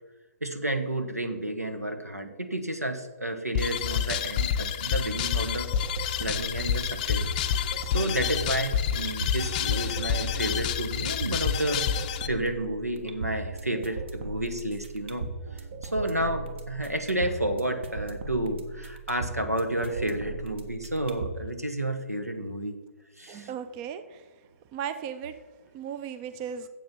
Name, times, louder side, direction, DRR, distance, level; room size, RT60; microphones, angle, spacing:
voice 1, 0.4-5.7 6.2-15.3 15.5-22.8 23.2-23.5, right 1 dB, 85° right, 7 dB, 1.4 m, -31 dB
sound 1, 3.5-12.3, left 9 dB, 30° left, 0.5 m, -28 dB
sound 2, 5.5-21.5, right 3 dB, 50° right, 1.3 m, -38 dB
voice 2, 23.3-24.2 24.7-25.4 25.7-26.7, right 8 dB, 20° right, 11 dB, 0.5 m, -36 dB
7.8 x 7.8 x 7.0 m, 1.3 s
figure-of-eight pair, 130°, 8 cm